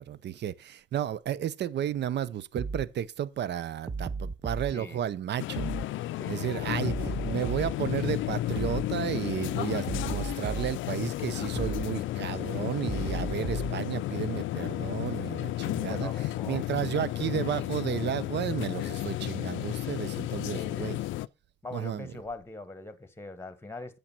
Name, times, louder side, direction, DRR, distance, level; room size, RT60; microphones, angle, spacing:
voice 1, 0.0-5.7 6.3-16.1 16.5-21.0 21.7-22.1, right 10 dB, 60° right, 0.7 m, -33 dB
sound 1, 2.6-2.9 3.9-4.7 5.6-5.9 6.9-7.8 8.6-8.9 9.9-10.8 11.6-11.9 12.9-13.8, right 4 dB, 20° right, 0.6 m, -34 dB
voice 2, 4.7-5.0 6.1-6.7 15.9-16.6 20.5-21.0 21.6-24.0, left 2 dB, 10° left, 1.4 m, -42 dB
sound 2, 5.4-21.3, left 15 dB, 80° left, 0.4 m, -33 dB
8.7 x 6.8 x 4.4 m
cardioid pair, 90°, 20 cm